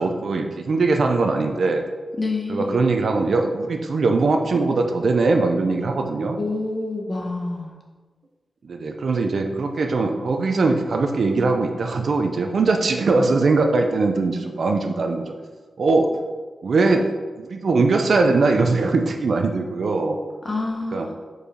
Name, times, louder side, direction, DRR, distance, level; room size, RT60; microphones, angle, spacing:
voice 1, 0.0-1.8 2.5-6.4 8.6-15.3 15.8-16.1 16.6-20.2 20.9-21.1, right 3 dB, 65° right, 4 dB, 0.6 m, -21 dB
voice 2, 2.2-2.7 6.4-7.7 20.4-21.1, left 3 dB, 30° left, -1 dB, 1.2 m, -27 dB
4.9 x 4.8 x 5.0 m, 1.3 s
wide cardioid pair, 135°, 0 cm